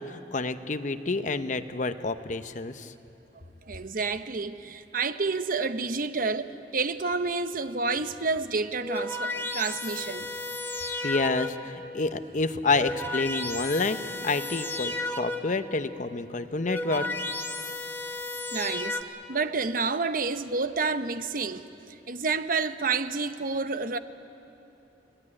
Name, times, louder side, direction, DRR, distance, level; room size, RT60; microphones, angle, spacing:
voice 1, 0.0-2.9 11.0-17.1, left 3 dB, 45° left, 0.8 m, -29 dB
voice 2, 3.7-10.3 18.5-19.0 19.3-21.6 22.1-24.0, right 4 dB, 50° right, 0.9 m, -29 dB
sound 1, 8.8-11.8 12.5-15.7 16.4-19.0, left 2 dB, 15° left, 1.1 m, -33 dB
24.0 x 18.0 x 9.9 m
head